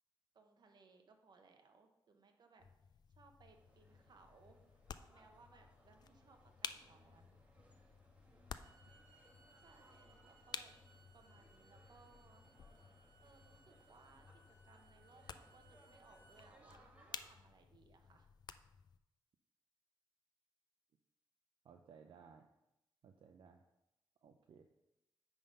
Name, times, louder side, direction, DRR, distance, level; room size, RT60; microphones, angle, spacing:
voice 1, 0.3-2.6 3.1-4.6 5.1-7.4 9.6-10.7 11.1-12.5 13.2-18.3, right 4 dB, 55° right, 5 dB, 1.0 m, -66 dB
sound 1, 2.6-19.0, left 7 dB, 55° left, 0.4 m, -54 dB
sound 2, 3.5-17.3, right 1 dB, 15° right, 1.3 m, -69 dB
Bowed string instrument, 8.5-16.5, right 3 dB, 35° right, 2.1 m, -69 dB
voice 2, 21.6-22.5 23.0-23.6 24.2-24.7, right 6 dB, 75° right, 4 dB, 0.5 m, -60 dB
8.9 x 3.8 x 5.3 m, 0.91 s
wide cardioid pair, 120°, 9 cm